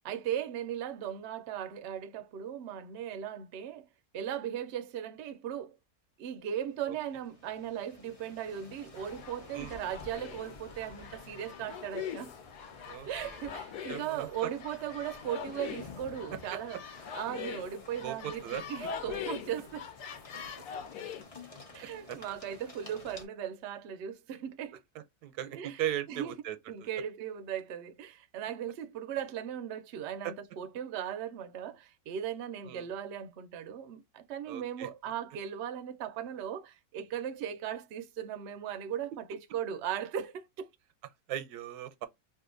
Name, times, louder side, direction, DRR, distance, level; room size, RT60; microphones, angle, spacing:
voice 1, 0.0-3.9 4.1-5.7 6.2-12.3 13.1-16.8 17.1-19.9 21.7-24.8 25.5-25.8 26.1-26.3 26.7-40.7, right 9 dB, 65° right, 0.6 m, -38 dB
sound 1, 6.4-23.3, left 3 dB, 40° left, 0.5 m, -53 dB
sound 2, 8.9-21.2, left 7 dB, 85° left, 1.3 m, -43 dB
voice 2, 12.9-13.3 13.9-14.5 16.5-16.6 18.0-18.6 22.1-22.2 25.2-26.9 30.2-30.3 32.6-32.9 34.5-34.9 41.3-42.1, right 12 dB, 90° right, 1.1 m, -38 dB
2.8 x 2.4 x 3.7 m
omnidirectional pair, 1.6 m